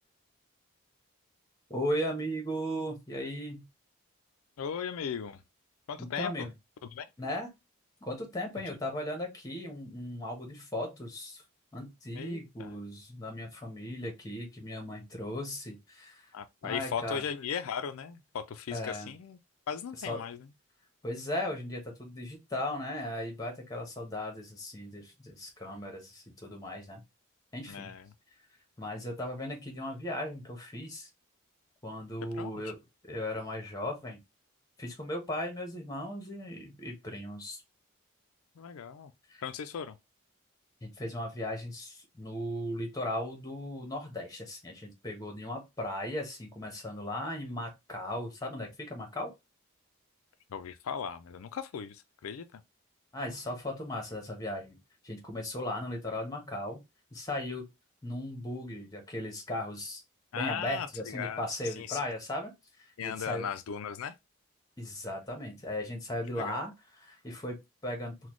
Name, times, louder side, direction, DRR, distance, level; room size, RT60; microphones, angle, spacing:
voice 1, 1.7-3.7 6.0-6.5 7.2-7.5 8.0-11.4 11.7-16.3 16.6-17.2 18.7-19.1 20.0-20.2 21.0-27.0 27.5-27.9 28.8-31.1 31.8-32.8 33.1-34.2 34.8-37.6 39.3-39.4 40.8-49.3 53.1-54.8 55.0-56.8 57.1-57.7 58.0-60.0 60.3-62.5 63.0-63.5 64.8-67.6 67.8-68.2, left 1 dB, 15° left, 1.0 m, -37 dB
voice 2, 4.6-5.4 5.9-6.3 6.9-7.1 12.1-12.8 16.3-19.4 19.7-20.4 27.7-28.1 32.4-32.7 38.6-39.1 39.4-40.0 50.5-52.6 60.3-62.0 63.0-64.1 66.4-66.6, left 7 dB, 90° left, 0.4 m, -37 dB
4.0 x 2.2 x 3.0 m
head